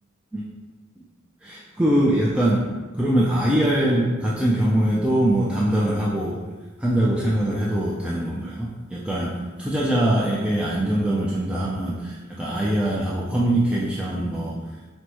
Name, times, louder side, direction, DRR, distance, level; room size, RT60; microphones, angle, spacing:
voice 1, 1.4-6.5 6.8-14.7, right 1 dB, 5° right, -6 dB, 0.4 m, -23 dB
4.3 x 2.1 x 4.6 m, 1.2 s
head